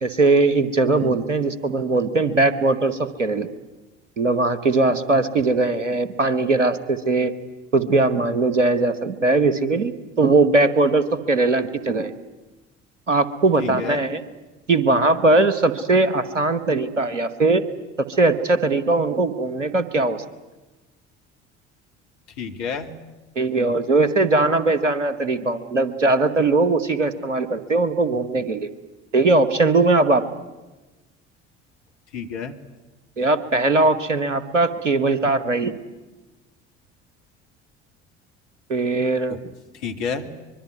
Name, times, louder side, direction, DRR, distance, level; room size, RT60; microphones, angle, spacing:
voice 1, 0.0-3.5 4.2-7.3 7.7-12.1 13.1-14.2 14.7-17.6 18.1-20.2 23.3-28.7 29.1-30.2 33.2-35.7 38.7-39.4, right 3 dB, 85° right, 14 dB, 1.3 m, -20 dB
voice 2, 13.6-14.0 22.4-22.9 32.1-32.5 39.7-40.3, left 6 dB, 70° left, 5 dB, 2.3 m, -30 dB
24.5 x 22.5 x 9.4 m, 1.1 s
figure-of-eight pair, 55°, 36 cm